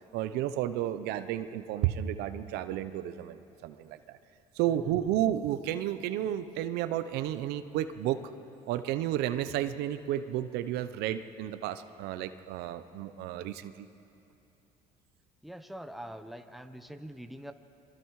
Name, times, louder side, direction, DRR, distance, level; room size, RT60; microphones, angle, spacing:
voice 1, 0.1-4.2 4.5-8.2 8.7-13.9, right 12 dB, 80° right, 11 dB, 0.9 m, -32 dB
voice 2, 15.4-17.5, equal, ahead, 7 dB, 1.1 m, -44 dB
28.5 x 23.0 x 4.9 m, 2.7 s
cardioid pair, 100°, 16 cm